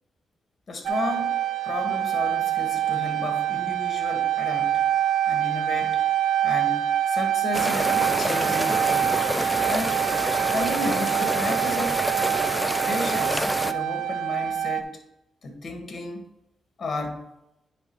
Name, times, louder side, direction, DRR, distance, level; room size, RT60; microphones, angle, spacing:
voice 1, 0.7-4.8 5.2-6.0 6.4-9.2 9.7-10.0 10.5-12.0 12.8-15.0 15.4-16.2 16.8-17.3, left 2 dB, 45° left, 4 dB, 1.6 m, -33 dB
sound 1, 0.8-14.8, right 11 dB, 85° right, 0.5 m, -25 dB
sound 2, 7.5-13.7, equal, ahead, 0.4 m, -27 dB
9.9 x 3.6 x 4.7 m, 0.86 s
cardioid pair, 90°, 0 cm